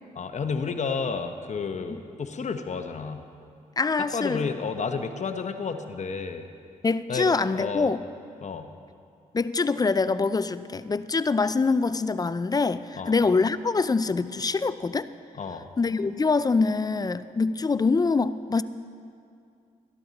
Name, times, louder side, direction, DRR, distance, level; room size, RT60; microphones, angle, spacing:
voice 1, 0.1-3.2 4.1-6.4 7.1-7.9 8.4-8.7 12.9-13.1 15.4-15.7, left 5 dB, 50° left, 7 dB, 0.9 m, -31 dB
voice 2, 3.8-4.5 6.8-8.0 9.3-15.1 15.8-18.6, left 4 dB, 25° left, 14 dB, 0.4 m, -24 dB
13.0 x 12.5 x 4.1 m, 2.4 s
supercardioid pair, 55°, 15 cm